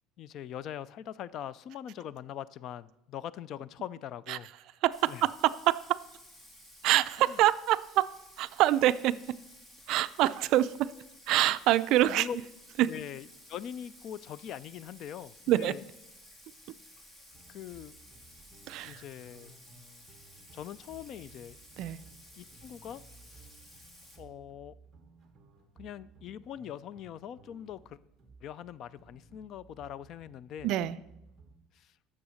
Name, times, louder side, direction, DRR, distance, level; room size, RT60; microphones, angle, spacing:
voice 1, 0.2-4.5 5.1-5.3 7.2-7.4 12.0-12.4 12.9-15.8 17.5-17.9 18.8-19.5 20.5-21.6 22.4-23.0 23.3-23.5 24.2-24.7 25.8-28.0 28.4-30.7 31.7-31.9, left 9 dB, 45° left, 19 dB, 0.3 m, -42 dB
voice 2, 4.8-6.0 6.8-8.1 8.4-9.2 9.9-10.9 11.3-12.3 12.8-12.9 15.5-15.7 18.7-19.0 21.8-22.0 30.6-31.0, right 14 dB, 55° right, 15 dB, 0.4 m, -25 dB
Bathtub (filling or washing), 4.9-24.2, left 1 dB, 15° left, 1.8 m, -55 dB
sound 1, 17.3-31.6, right 3 dB, 20° right, 1.3 m, -58 dB
9.9 x 7.1 x 6.3 m, 0.91 s
cardioid pair, 160°, 0 cm